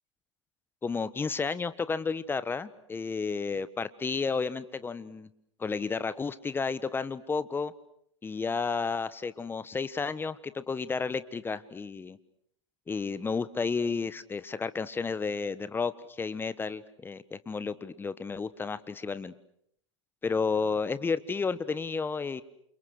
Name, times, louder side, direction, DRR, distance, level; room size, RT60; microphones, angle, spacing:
voice 1, 0.8-5.3 5.6-7.7 8.2-12.2 12.9-19.3 20.2-22.4, left 4 dB, 15° left, 15 dB, 1.3 m, -32 dB
29.0 x 28.5 x 6.6 m, 0.69 s
hypercardioid pair, 105°, 17 cm